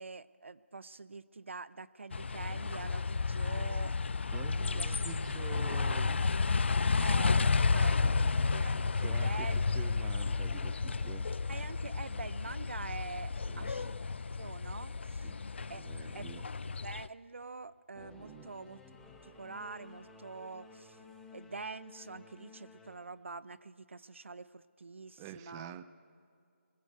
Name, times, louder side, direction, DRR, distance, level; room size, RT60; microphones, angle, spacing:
voice 1, 0.0-3.9 4.6-5.0 7.0-7.9 8.5-9.6 9.9-10.0 11.5-13.9 14.3-15.3 15.7-15.8 16.1-16.3 16.6-18.8 19.2-21.0 21.3-25.7, right 4 dB, 75° right, 17 dB, 0.7 m, -45 dB
sound 1, 2.1-17.1, left 4 dB, 65° left, 0.6 m, -32 dB
voice 2, 4.3-6.3 7.4-7.6 8.0-8.5 9.0-11.3 13.5-13.9 15.2-15.4 15.7-16.5 18.2-18.5 25.2-25.8, right 10 dB, 15° right, 13 dB, 0.5 m, -47 dB
Singing / Musical instrument, 17.9-23.0, left 4 dB, 5° left, 1.3 m, -55 dB
22.0 x 20.5 x 8.1 m, 2.4 s
figure-of-eight pair, 160°, 7 cm